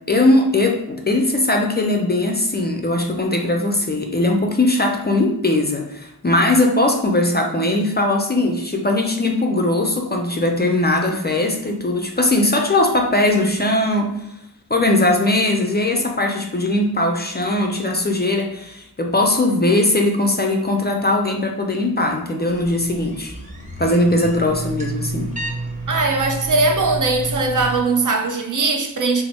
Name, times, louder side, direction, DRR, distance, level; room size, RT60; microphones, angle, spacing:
voice 1, 0.1-14.2 14.7-23.3 23.8-25.3, left 2 dB, 25° left, 2 dB, 0.4 m, -19 dB
sound 1, 22.5-27.8, right 2 dB, 20° right, 0.9 m, -30 dB
voice 2, 25.9-29.2, right 3 dB, 50° right, 4 dB, 0.5 m, -20 dB
2.9 x 2.1 x 4.0 m, 0.84 s
wide cardioid pair, 60°, 39 cm